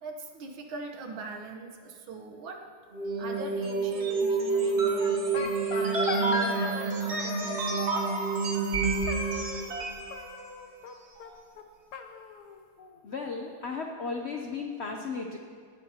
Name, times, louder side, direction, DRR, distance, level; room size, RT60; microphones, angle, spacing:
voice 1, 0.0-2.6 3.2-5.4 5.7-7.8, right 4 dB, 75° right, 3 dB, 1.9 m, -41 dB
sound 1, 2.9-10.1, right 4 dB, 40° right, 1.3 m, -28 dB
sound 2, 5.0-6.9 7.1-8.2 9.1-9.8 10.1-10.9 11.2-11.3 11.6-11.7 11.9-13.0, left 6 dB, 60° left, 1.3 m, -38 dB
voice 2, 13.0-15.4, left 4 dB, 90° left, 2 dB, 0.5 m, -35 dB
19.0 x 11.5 x 2.9 m, 2.1 s
omnidirectional pair, 2.2 m